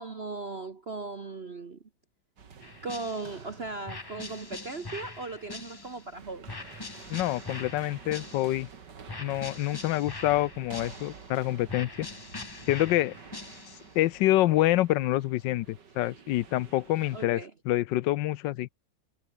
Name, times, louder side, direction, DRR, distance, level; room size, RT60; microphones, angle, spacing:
voice 1, 0.0-1.8 2.8-6.5 17.1-17.5, right 3 dB, 35° right, 1.5 m, -38 dB
sound 1, 2.4-17.3, right 6 dB, 65° right, 2.8 m, -50 dB
sound 2, 2.6-3.5 3.9-6.1 6.5-8.7 9.1-11.3 11.7-13.9, left 3 dB, 20° left, 0.6 m, -43 dB
voice 2, 7.1-8.7 9.2-12.1 12.7-13.1 13.9-18.7, left 15 dB, 75° left, 1.3 m, -27 dB
omnidirectional pair, 2.0 m